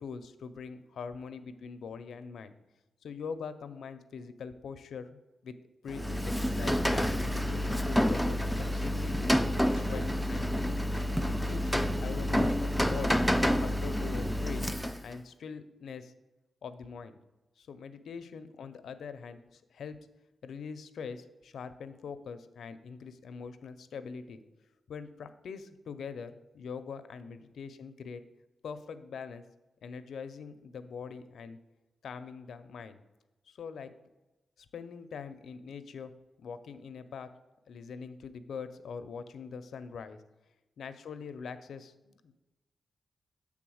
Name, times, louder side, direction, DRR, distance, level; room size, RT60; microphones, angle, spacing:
voice 1, 0.0-2.5 3.0-5.6 5.8-8.4 8.7-9.4 9.7-10.8 11.2-13.2 13.6-14.7 15.0-16.1 16.6-17.2 17.6-20.0 20.4-24.4 24.9-28.2 28.6-29.4 29.8-31.6 32.0-33.0 33.5-33.9 34.6-36.1 36.4-37.3 37.7-40.2 40.8-42.3, left 6 dB, 85° left, 10 dB, 0.5 m, -43 dB
Rain, 5.9-15.2, equal, ahead, 0.3 m, -29 dB
7.8 x 3.6 x 6.2 m, 1.1 s
wide cardioid pair, 105°, 0 cm